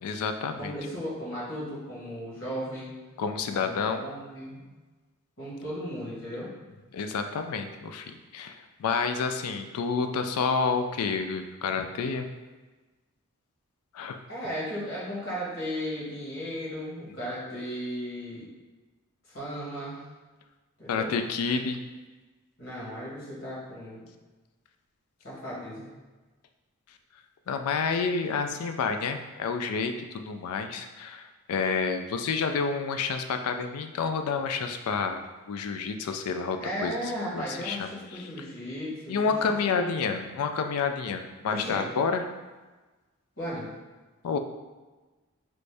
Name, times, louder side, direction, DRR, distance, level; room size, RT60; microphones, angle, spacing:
voice 1, 0.0-0.7 3.2-4.0 6.9-12.3 13.9-14.2 20.9-21.8 27.5-36.9 37.3-38.5 39.1-42.2 44.2-44.4, left 5 dB, 85° left, 7 dB, 0.3 m, -29 dB
voice 2, 0.6-2.9 3.5-4.6 5.4-6.5 14.3-18.5 19.3-20.0 20.8-21.1 22.6-24.0 25.2-25.9 36.6-39.9 41.5-41.8 43.4-43.7, equal, 60° left, -7 dB, 1.5 m, -36 dB
3.0 x 2.6 x 3.3 m, 1.2 s
head